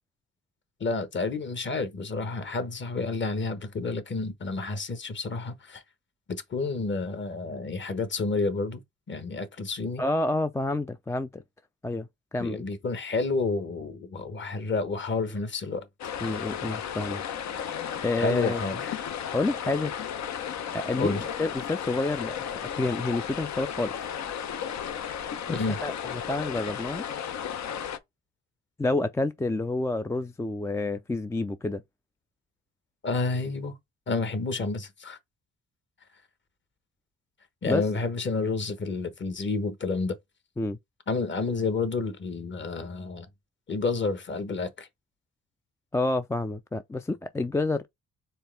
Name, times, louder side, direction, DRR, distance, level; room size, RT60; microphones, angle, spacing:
voice 1, 0.8-5.8 6.3-8.8 9.1-10.0 12.4-15.9 18.1-18.9 20.9-21.2 25.5-25.8 33.0-33.7 34.1-35.2 37.6-40.2 41.1-43.3 43.7-44.9, left 3 dB, 40° left, 1.2 m, -30 dB
voice 2, 10.0-11.4 11.8-12.6 16.2-17.2 18.0-18.6 19.3-19.9 20.7-24.1 25.5-27.0 28.8-31.8 37.7-37.8 40.6-40.8 45.9-47.8, left 2 dB, 10° left, 0.3 m, -29 dB
sound 1, 16.0-28.0, left 8 dB, 65° left, 0.8 m, -34 dB
4.5 x 3.4 x 3.3 m
cardioid pair, 90°, 30 cm